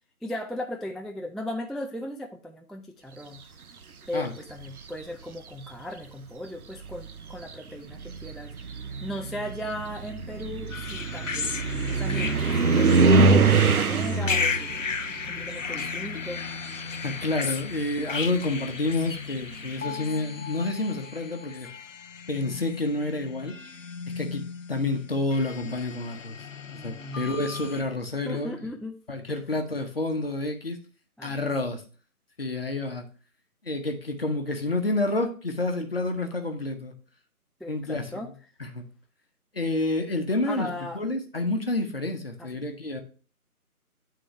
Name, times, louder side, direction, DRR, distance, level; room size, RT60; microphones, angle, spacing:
voice 1, 0.2-3.4 4.1-8.5 9.0-11.5 11.9-14.7 15.2-16.5 26.7-27.4 28.2-28.9 29.3-29.4 31.2-31.4 37.6-38.3 40.5-41.0 42.4-42.5, left 1 dB, ahead, 2 dB, 0.3 m, -37 dB
sound 1, 4.5-5.0 6.0-6.1 6.7-16.6 16.9-19.5, right 4 dB, 70° right, 0.7 m, -25 dB
sound 2, 10.7-27.8, left 5 dB, 60° left, 0.5 m, -35 dB
voice 2, 17.0-21.7 22.3-23.6 24.2-24.4 24.7-26.4 26.7-28.5 29.1-30.8 31.2-31.8 32.4-33.1 33.6-36.9 37.7-38.3 38.6-38.9 39.5-43.0, left 2 dB, 40° left, 4 dB, 0.9 m, -29 dB
9.5 x 3.8 x 3.1 m, 0.38 s
figure-of-eight pair, 155°, 45 cm